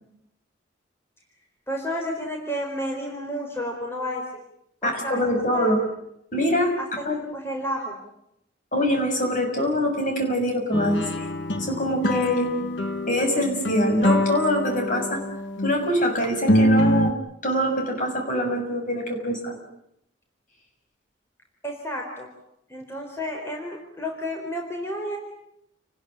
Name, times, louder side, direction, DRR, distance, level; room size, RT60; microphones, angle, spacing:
voice 1, 1.7-4.2 4.8-5.2 5.5-5.7 6.8-7.9 21.6-22.3 22.7-25.2, equal, 15° left, 1 dB, 4.2 m, -31 dB
voice 2, 4.8-5.8 6.3-6.7 7.0-7.2 8.7-11.0 11.6-12.5 13.1-15.2 15.6-19.6, equal, 45° left, 3 dB, 6.5 m, -24 dB
sound 1, 10.7-15.7 16.2-17.1, equal, 75° left, 1.6 m, -24 dB
29.5 x 20.0 x 8.9 m, 0.78 s
head